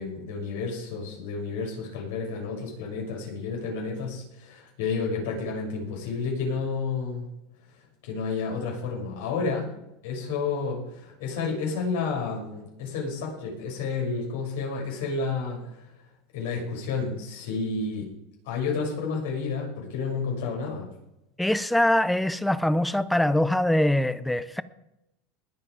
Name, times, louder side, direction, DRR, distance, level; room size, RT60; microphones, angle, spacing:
voice 1, 0.0-7.3 8.0-9.7 10.0-15.9 16.3-18.1 18.4-20.9, left 4 dB, 80° left, 6.7 m, -31 dB
voice 2, 21.4-24.6, left 1 dB, 5° left, 0.5 m, -23 dB
21.0 x 7.6 x 5.0 m
supercardioid pair, 150°, 0 cm